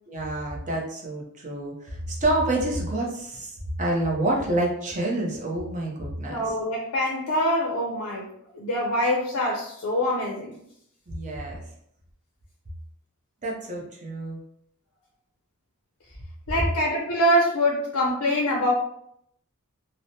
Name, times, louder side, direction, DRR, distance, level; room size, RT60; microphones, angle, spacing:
voice 1, 0.1-6.4 11.1-11.6 13.4-14.4, right 1 dB, 35° right, -2 dB, 0.6 m, -28 dB
voice 2, 6.2-10.6 16.5-18.7, equal, 65° left, -1 dB, 0.5 m, -24 dB
2.9 x 2.0 x 2.7 m, 0.73 s
head